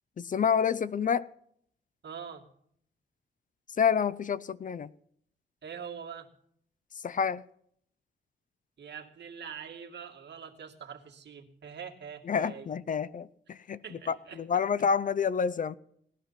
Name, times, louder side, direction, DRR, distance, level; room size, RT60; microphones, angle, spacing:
voice 1, 0.2-1.3 3.8-4.9 7.0-7.4 12.3-13.8 14.1-15.8, left 7 dB, 40° left, 0.6 m, -28 dB
voice 2, 2.0-2.5 5.6-6.3 8.8-12.7 13.8-14.4, right 7 dB, 60° right, 2.3 m, -43 dB
18.0 x 11.5 x 5.8 m
cardioid pair, 105°, 20 cm